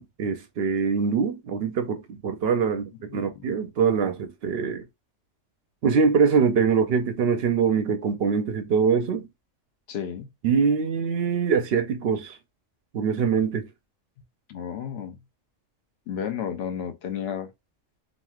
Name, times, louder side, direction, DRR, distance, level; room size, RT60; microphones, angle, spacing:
voice 1, 0.0-4.8 5.8-9.3 10.4-12.4 12.9-13.7, right 6 dB, 65° right, 0.7 m, -23 dB
voice 2, 3.1-3.4 9.9-10.3 14.5-15.1 16.1-17.5, left 8 dB, 60° left, 0.8 m, -32 dB
3.1 x 2.5 x 2.3 m
omnidirectional pair, 1.3 m